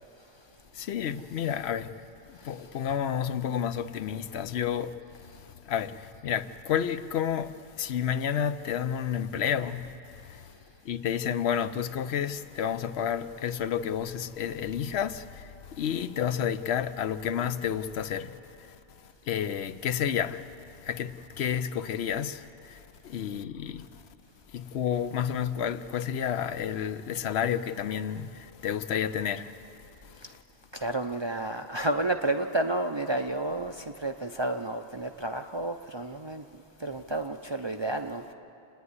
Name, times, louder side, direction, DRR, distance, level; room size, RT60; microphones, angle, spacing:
voice 1, 0.7-1.9 2.3-5.0 5.3-10.0 10.2-10.5 10.8-18.4 18.7-18.8 19.3-23.9 24.5-30.4, left 8 dB, 75° left, 0.9 m, -31 dB
voice 2, 30.7-36.4 36.8-38.3, right 2 dB, 35° right, 0.4 m, -31 dB
28.0 x 9.6 x 9.6 m
omnidirectional pair, 1.1 m